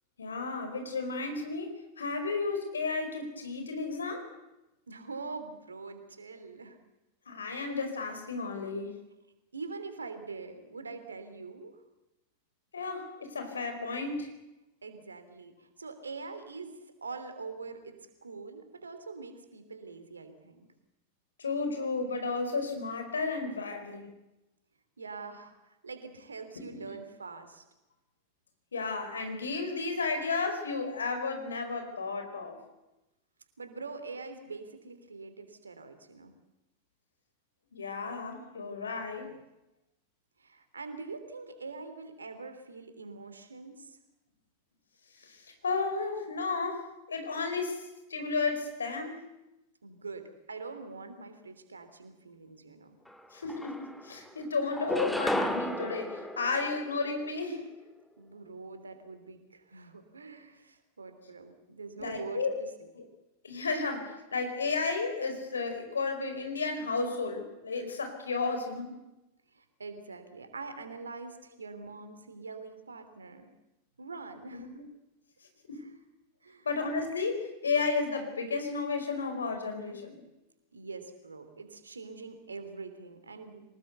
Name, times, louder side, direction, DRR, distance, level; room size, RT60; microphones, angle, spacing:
voice 1, 0.2-4.3 7.3-8.9 12.7-14.3 21.4-24.1 26.5-26.6 28.7-32.6 37.7-39.3 45.2-47.8 48.1-49.2 53.3-57.6 62.0-62.5 62.9-63.0 63.4-69.0 74.5-74.8 75.7-75.8 76.6-80.2, left 4 dB, 70° left, 6 dB, 4.8 m, -33 dB
voice 2, 4.9-6.8 9.5-11.8 14.8-20.7 25.0-27.6 33.6-36.3 40.4-44.0 49.8-53.0 58.2-62.9 69.5-73.5 74.0-74.7 75.8-75.9 76.4-76.7 80.7-83.6, right 4 dB, 75° right, 9 dB, 3.1 m, -44 dB
sound 1, 53.1-53.2 53.5-54.3 54.7-57.3, left 1 dB, 5° left, 2.0 m, -33 dB
24.0 x 20.0 x 8.1 m, 0.96 s
figure-of-eight pair, 90°, 0 cm